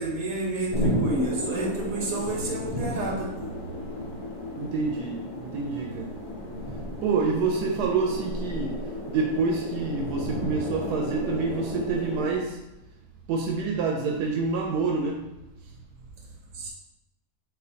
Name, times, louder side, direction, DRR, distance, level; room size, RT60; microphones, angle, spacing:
voice 1, 0.0-3.3 16.5-16.7, right 2 dB, 60° right, -3 dB, 1.5 m, -30 dB
sound 1, 0.7-12.4, left 1 dB, 70° left, 1.4 m, -33 dB
voice 2, 4.6-6.1 7.0-8.8 9.1-12.6 13.3-15.2, right 4 dB, 85° right, 1 dB, 1.1 m, -27 dB
4.1 x 3.9 x 2.7 m, 0.95 s
omnidirectional pair, 1.7 m